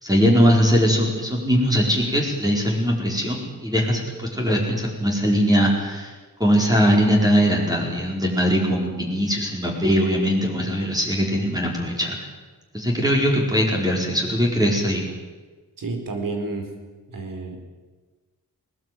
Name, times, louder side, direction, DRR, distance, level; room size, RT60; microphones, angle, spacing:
voice 1, 0.0-6.1 6.4-12.2 12.7-15.0, equal, 10° right, -1 dB, 4.7 m, -21 dB
voice 2, 15.8-16.7 17.1-17.6, right 3 dB, 65° right, 4 dB, 4.6 m, -30 dB
20.0 x 19.5 x 9.4 m, 1.3 s
wide cardioid pair, 140°, 35 cm